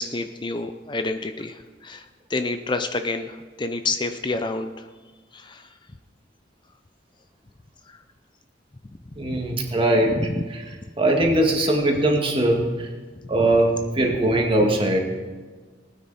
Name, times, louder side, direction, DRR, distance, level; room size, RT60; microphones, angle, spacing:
voice 1, 0.0-4.9 5.3-5.7 9.3-9.4 10.4-10.5, left 3 dB, 25° left, 8 dB, 0.5 m, -29 dB
voice 2, 9.2-10.2 10.5-10.6 11.0-12.9 13.3-15.0, right 1 dB, 30° right, 1 dB, 2.1 m, -20 dB
19.5 x 9.4 x 4.2 m, 1.4 s
head